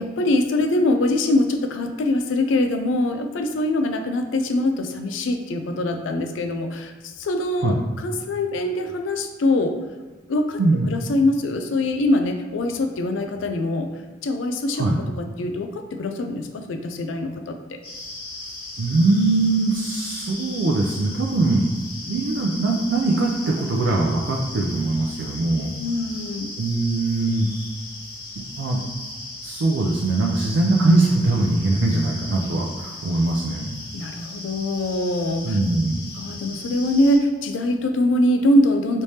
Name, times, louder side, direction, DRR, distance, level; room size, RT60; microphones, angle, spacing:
voice 1, 0.0-9.8 10.3-10.6 10.9-13.9 14.2-14.9 15.2-17.8 25.8-26.5 33.9-35.6 36.2-39.0, left 1 dB, 80° left, 6 dB, 0.4 m, -23 dB
sound 1, 17.8-37.2, left 2 dB, 50° left, 1.2 m, -37 dB
voice 2, 18.8-21.7 22.0-25.7 26.6-27.5 28.6-28.8 29.4-33.8 35.4-36.0, right 2 dB, 75° right, -1 dB, 0.4 m, -21 dB
3.2 x 3.2 x 2.7 m, 1.2 s
head